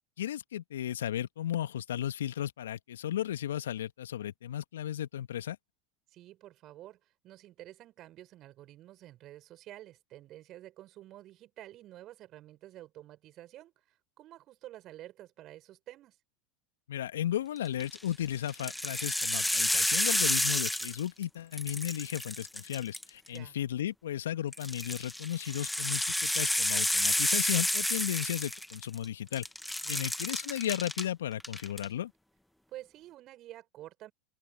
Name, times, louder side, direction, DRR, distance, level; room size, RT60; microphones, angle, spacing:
voice 1, 0.2-5.6 16.9-29.5 29.9-32.1, left 11 dB, 75° left, 2.1 m, -35 dB
voice 2, 6.1-16.2 23.3-23.6 29.8-30.1 32.7-34.1, right 14 dB, 45° right, 6.9 m, -50 dB
sound 1, 17.7-18.0 18.5-21.2 21.5-23.4 24.5-29.1 29.3-31.0 31.4-31.9, left 1 dB, 5° left, 1.8 m, -30 dB
figure-of-eight pair, 85°, 0 cm